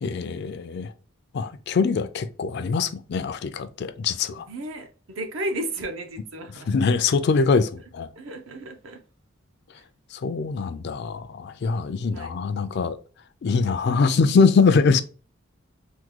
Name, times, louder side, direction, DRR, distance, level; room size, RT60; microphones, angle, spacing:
voice 1, 0.0-0.9 1.3-4.4 6.7-8.1 10.1-13.0 13.4-15.0, left 4 dB, 55° left, 0.3 m, -23 dB
voice 2, 4.4-6.7 8.2-9.0 9.7-9.8 12.1-12.3, right 1 dB, 70° right, 0.7 m, -33 dB
3.5 x 2.2 x 3.0 m
head